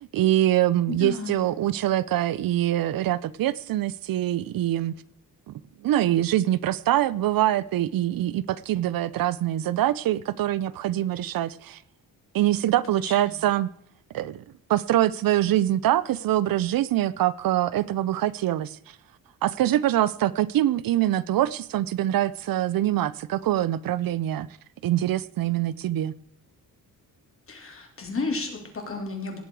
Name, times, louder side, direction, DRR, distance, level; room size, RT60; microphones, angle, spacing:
voice 1, 0.1-4.9 5.5-5.6 5.8-11.8 12.3-13.7 14.1-14.4 14.7-18.8 19.4-24.5 24.8-26.1, right 13 dB, 65° right, 0.5 m, -24 dB
voice 2, 0.9-1.4 12.9-13.4 27.5-29.4, left 3 dB, 35° left, 3.2 m, -33 dB
17.5 x 7.4 x 4.7 m
cardioid pair, 130°, 37 cm